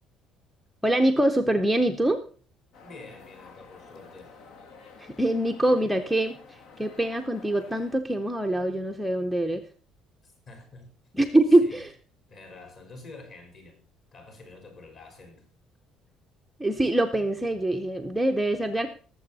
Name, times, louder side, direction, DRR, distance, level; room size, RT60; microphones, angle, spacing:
voice 1, 0.8-2.2 5.0-9.6 11.1-11.9 16.6-18.9, right 1 dB, 5° right, 0.7 m, -24 dB
sound 1, 2.7-8.0, left 5 dB, 60° left, 1.6 m, -50 dB
voice 2, 2.8-4.4 10.2-10.9 11.5-11.8 12.3-13.8 14.1-15.5, left 3 dB, 40° left, 4.2 m, -47 dB
19.0 x 7.5 x 4.0 m
cardioid pair, 175°, 0 cm